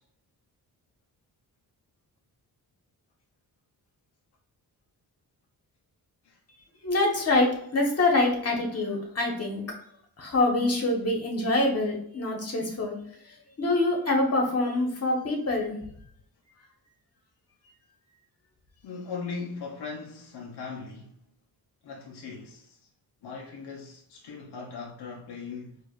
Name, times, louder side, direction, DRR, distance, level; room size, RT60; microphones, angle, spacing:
voice 1, 6.8-9.6 10.2-13.0 13.6-15.8, left 2 dB, 40° left, 1.2 m, -25 dB
voice 2, 18.8-21.2 21.8-22.9 23.2-25.8, left 4 dB, 85° left, 0.7 m, -39 dB
4.8 x 2.5 x 2.4 m
wide cardioid pair, 105°, 39 cm